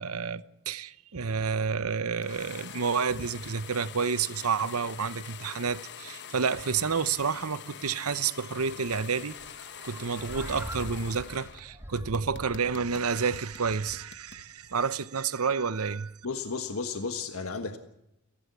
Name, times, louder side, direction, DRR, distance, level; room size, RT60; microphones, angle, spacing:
voice 1, 0.0-9.4 9.8-16.1, right 5 dB, 85° right, 0.9 m, -30 dB
sound 1, 2.2-11.6 11.9-14.4, left 8 dB, 55° left, 1.1 m, -45 dB
sound 2, 9.3-14.4, equal, 10° right, 2.5 m, -43 dB
voice 2, 16.2-17.8, left 4 dB, 70° left, 1.5 m, -33 dB
29.5 x 11.5 x 8.2 m
head